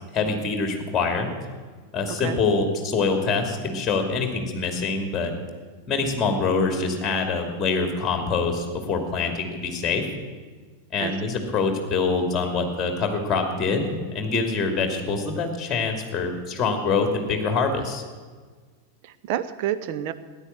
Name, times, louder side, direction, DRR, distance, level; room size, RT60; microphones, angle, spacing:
voice 1, 0.1-1.3 1.9-5.3 5.9-10.1 10.9-18.0, left 4 dB, 20° left, 5 dB, 2.7 m, -25 dB
voice 2, 2.1-2.4 11.0-11.3 19.0-20.1, right 11 dB, 45° right, 10 dB, 0.9 m, -29 dB
16.0 x 10.0 x 8.0 m, 1.5 s
figure-of-eight pair, 90°, 0 cm